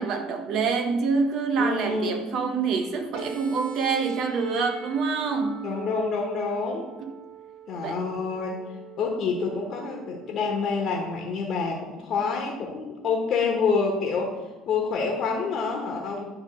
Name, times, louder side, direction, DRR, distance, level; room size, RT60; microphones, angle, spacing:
voice 1, 0.0-5.7 7.8-8.1, right 5 dB, 60° right, 5 dB, 1.2 m, -26 dB
voice 2, 1.6-2.2 5.6-6.9 7.7-8.6 9.0-14.3 14.7-16.2, left 4 dB, 55° left, 0 dB, 1.5 m, -27 dB
sound 1, 3.1-11.1, right 7 dB, 75° right, 2.1 m, -44 dB
10.0 x 3.6 x 5.3 m, 1.1 s
hypercardioid pair, 65°, 0 cm